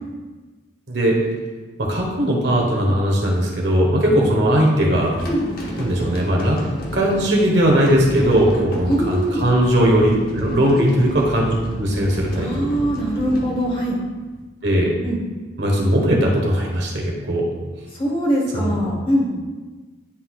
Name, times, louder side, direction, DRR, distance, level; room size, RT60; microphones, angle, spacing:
voice 1, 1.8-5.1 5.8-6.6 6.9-12.7 14.6-14.9 15.6-17.5 18.5-18.8, equal, 55° right, -1 dB, 1.3 m, -18 dB
sound 1, 5.0-14.4, equal, 45° left, 1.0 m, -33 dB
voice 2, 8.9-9.4 10.7-10.8 12.3-14.0 15.0-15.2 17.9-19.3, equal, 25° left, -3 dB, 1.2 m, -22 dB
10.0 x 4.0 x 2.4 m, 1.3 s
head